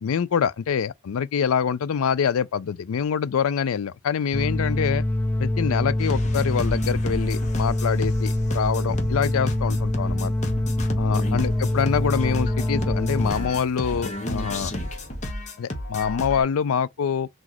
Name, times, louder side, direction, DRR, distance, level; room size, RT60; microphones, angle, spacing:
voice 1, 0.0-5.0 5.4-10.3 11.0-14.7 15.6-17.3, left 7 dB, 80° left, 0.4 m, -25 dB
sound 1, 4.3-13.3, left 1 dB, 10° left, 0.4 m, -24 dB
sound 2, 6.0-16.4, left 1 dB, 35° left, 0.9 m, -32 dB
3.9 x 2.4 x 2.9 m
head